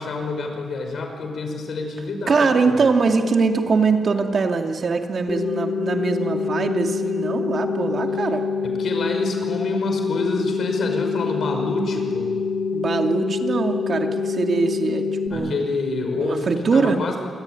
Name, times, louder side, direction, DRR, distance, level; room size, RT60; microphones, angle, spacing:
voice 1, 0.0-2.8 8.6-12.3 15.3-17.2, left 3 dB, 70° left, 4 dB, 6.0 m, -27 dB
voice 2, 2.3-8.4 12.7-15.6 16.2-17.0, right 4 dB, 55° right, 4 dB, 2.4 m, -22 dB
sound 1, 5.3-15.3, left 5 dB, 55° left, 4.6 m, -25 dB
27.0 x 21.5 x 9.6 m, 2.1 s
cardioid pair, 75°, 0 cm